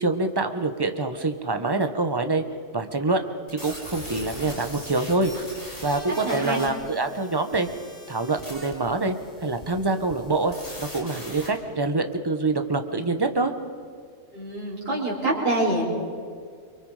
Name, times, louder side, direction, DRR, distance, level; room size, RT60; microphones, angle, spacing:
voice 1, 0.0-2.4 2.7-3.2 3.5-5.3 5.8-7.7 8.1-9.1 9.4-13.5, right 3 dB, 20° right, 7 dB, 1.3 m, -25 dB
sound 1, 3.5-11.5, left 1 dB, 45° left, 4.9 m, -41 dB
voice 2, 6.2-6.6 14.3-15.8, right 2 dB, 45° right, -6 dB, 5.4 m, -26 dB
29.5 x 24.0 x 5.1 m, 2.1 s
omnidirectional pair, 1.4 m